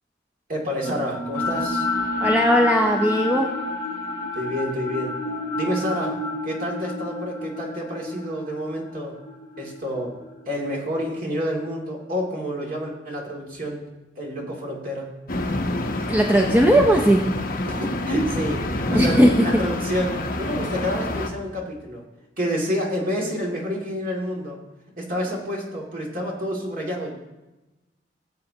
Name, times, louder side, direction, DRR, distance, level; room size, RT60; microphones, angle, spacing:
voice 1, 0.5-1.9 4.3-5.2 5.5-6.2 6.4-9.2 9.6-10.2 10.5-13.8 14.2-15.1 17.7-22.0 22.4-24.6 25.0-27.1, equal, 50° right, -2 dB, 2.4 m, -28 dB
sound 1, 0.8-11.0, left 2 dB, 20° left, 4.1 m, -29 dB
voice 2, 2.2-3.5 16.1-17.2 18.9-19.5, equal, 10° right, 1 dB, 0.7 m, -17 dB
sound 2, 15.3-21.3, left 1 dB, 50° left, 1.0 m, -27 dB
16.5 x 7.7 x 2.8 m, 1.0 s
head